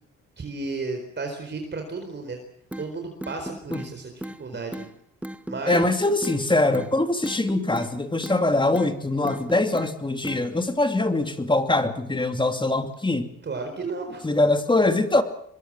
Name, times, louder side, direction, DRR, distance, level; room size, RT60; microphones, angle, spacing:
voice 1, 0.4-2.4 2.8-4.9 5.5-5.9 13.4-14.2, right 3 dB, 35° right, 5 dB, 4.3 m, -33 dB
sound 1, 2.7-2.9 3.2-3.9 4.2-4.4 4.7-4.9 5.2-5.9 6.2-6.4 6.7-6.9 7.2-7.9 8.2-8.4 8.7-8.9 9.2-9.9 10.2-10.4, right 1 dB, 5° right, 1.2 m, -35 dB
voice 2, 5.7-13.3 14.2-15.2, left 2 dB, 15° left, 8 dB, 2.6 m, -23 dB
23.0 x 22.5 x 7.6 m, 0.69 s
cardioid pair, 90°, 30 cm